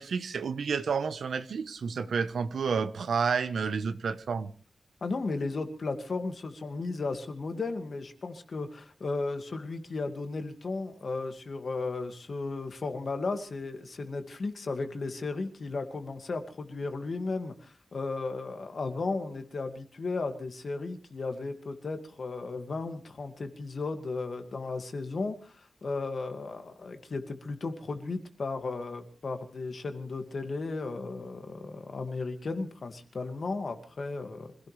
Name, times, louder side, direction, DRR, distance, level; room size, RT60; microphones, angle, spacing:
voice 1, 0.0-4.5, right 5 dB, 90° right, 1.1 m, -30 dB
voice 2, 5.0-34.5, left 3 dB, 50° left, 2.2 m, -35 dB
25.5 x 16.5 x 3.4 m
wide cardioid pair, 165°, 0 cm